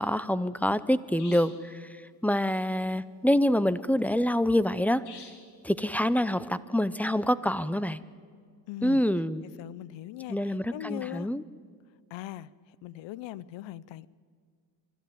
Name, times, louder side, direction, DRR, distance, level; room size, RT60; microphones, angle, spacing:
voice 1, 0.0-1.9 2.2-5.0 5.6-8.0 8.8-9.4 10.3-11.4, left 1 dB, 5° left, 16 dB, 0.6 m, -26 dB
sound 1, 1.2-1.7 5.1-5.5, left 5 dB, 65° left, 3.0 m, -48 dB
voice 2, 8.7-9.0 9.6-11.3 12.1-12.5 12.8-14.1, left 14 dB, 85° left, 21 dB, 0.7 m, -40 dB
24.5 x 12.5 x 9.3 m, 2.1 s
cardioid pair, 105°, 43 cm